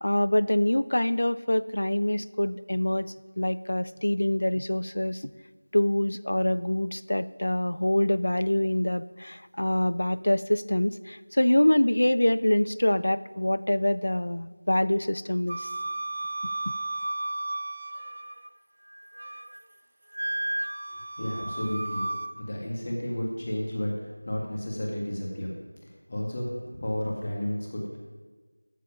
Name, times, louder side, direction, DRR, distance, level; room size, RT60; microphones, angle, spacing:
voice 1, 0.0-5.3 5.7-15.7, left 1 dB, 60° left, 16 dB, 0.4 m, -25 dB
Wind instrument woodwind instrument, 15.5-18.5 18.9-19.6 20.1-22.3, right 2 dB, 40° right, 0.5 m, -33 dB
voice 2, 21.2-22.1 22.4-23.9 24.2-25.5 26.1-26.5 26.8-27.8, left 1 dB, 30° left, -1 dB, 2.0 m, -31 dB
13.0 x 7.4 x 5.2 m, 1.3 s
figure-of-eight pair, 175°, 0 cm